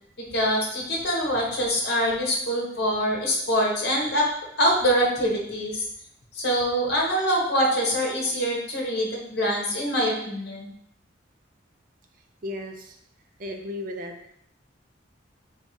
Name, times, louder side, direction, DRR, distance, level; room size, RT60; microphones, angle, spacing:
voice 1, 0.2-4.3 4.6-5.8 6.3-10.7, equal, 55° left, -2 dB, 1.1 m, -24 dB
voice 2, 12.4-13.0 13.4-14.1, left 1 dB, 45° right, 4 dB, 0.5 m, -34 dB
3.2 x 2.7 x 4.6 m, 0.70 s
head